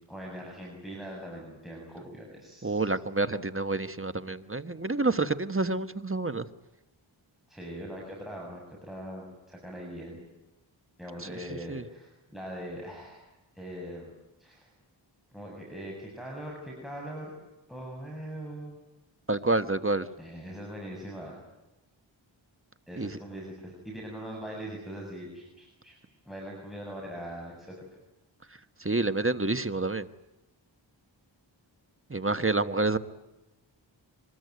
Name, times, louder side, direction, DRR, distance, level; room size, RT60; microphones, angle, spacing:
voice 1, 0.1-2.8 7.5-10.3 11.0-13.3 13.6-14.1 14.4-14.7 15.3-17.3 17.7-18.8 20.2-21.4 22.9-25.9 26.3-27.8, equal, ahead, -2 dB, 7.4 m, -41 dB
voice 2, 2.6-6.4 11.7-11.8 19.3-20.1 23.0-23.1 28.8-30.1 32.1-33.0, right 2 dB, 25° right, 11 dB, 1.3 m, -28 dB
24.5 x 21.0 x 9.5 m, 0.97 s
wide cardioid pair, 60°, 47 cm